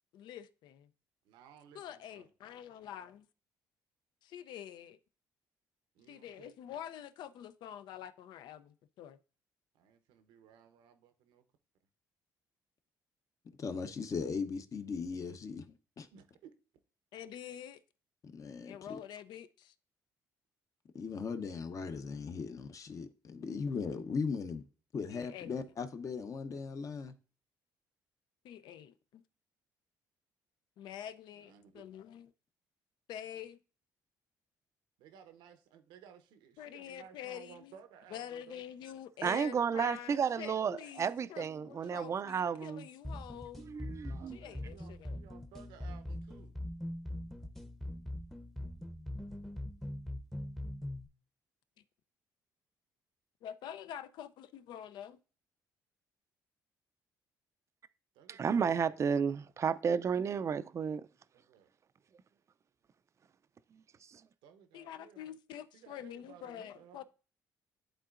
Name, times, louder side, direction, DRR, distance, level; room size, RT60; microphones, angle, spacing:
voice 1, 0.1-0.9 1.7-3.3 4.2-5.0 6.1-9.2 17.1-17.8 18.6-19.7 25.1-25.6 28.4-29.2 30.8-32.3 33.1-33.6 36.6-37.8 38.1-43.7 44.3-45.2 53.4-55.2 64.7-67.0, left 10 dB, 75° left, 0.5 m, -47 dB
voice 2, 1.3-1.8 2.1-2.2 6.0-6.5 9.8-11.4 16.1-16.2 31.5-31.8 35.0-38.6 44.0-46.5 58.2-58.4 59.1-59.4 61.5-61.7 64.4-65.2 65.7-67.0, right 8 dB, 85° right, 0.8 m, -57 dB
voice 3, 13.6-16.1 18.2-19.0 20.9-24.7 24.9-27.1, left 5 dB, 45° left, 0.8 m, -38 dB
voice 4, 39.2-42.9 43.6-44.4 58.3-61.0 64.1-64.2, right 6 dB, 40° right, 0.4 m, -32 dB
sound 1, 43.0-51.1, left 1 dB, 5° left, 0.7 m, -42 dB
11.0 x 3.8 x 2.5 m
supercardioid pair, 75°, 8 cm